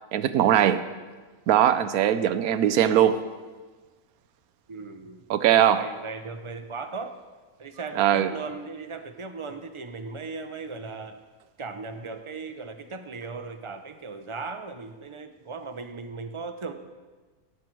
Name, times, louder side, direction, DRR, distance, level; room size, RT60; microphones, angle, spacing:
voice 1, 0.1-0.9 1.5-3.2 5.3-5.9 8.0-8.3, right 10 dB, 90° right, 12 dB, 1.1 m, -20 dB
voice 2, 4.7-5.2 5.7-7.2 7.6-11.2 11.6-16.7, right 4 dB, 35° right, 8 dB, 0.4 m, -37 dB
17.5 x 7.5 x 4.6 m, 1.3 s
omnidirectional pair, 1.5 m